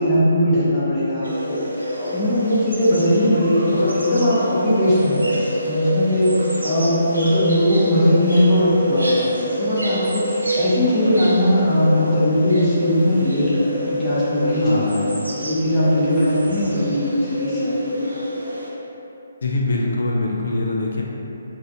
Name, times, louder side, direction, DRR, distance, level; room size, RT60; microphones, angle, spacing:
voice 1, 0.0-1.6 2.0-15.0 15.3-18.1, left 1 dB, 15° left, -13 dB, 1.3 m, -20 dB
sound 1, 1.2-18.7, equal, 80° right, 0.6 m, -25 dB
voice 2, 14.6-15.2 19.4-21.0, left 2 dB, 60° left, -2 dB, 0.6 m, -23 dB
3.9 x 2.9 x 2.8 m, 2.9 s
figure-of-eight pair, 140°, 0 cm